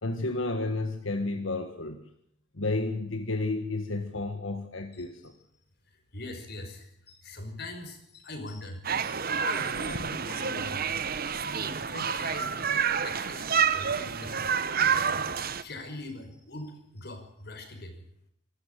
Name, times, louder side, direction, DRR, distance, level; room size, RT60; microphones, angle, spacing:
voice 1, 0.0-2.1 2.5-5.3, left 2 dB, 85° left, 7 dB, 1.6 m, -31 dB
voice 2, 6.1-8.8 9.2-10.9 11.3-14.6 15.2-18.0, left 2 dB, 55° left, 6 dB, 5.4 m, -42 dB
sound 1, 8.9-15.6, right 7 dB, 50° right, 1.1 m, -29 dB
25.5 x 13.5 x 9.1 m, 0.72 s
head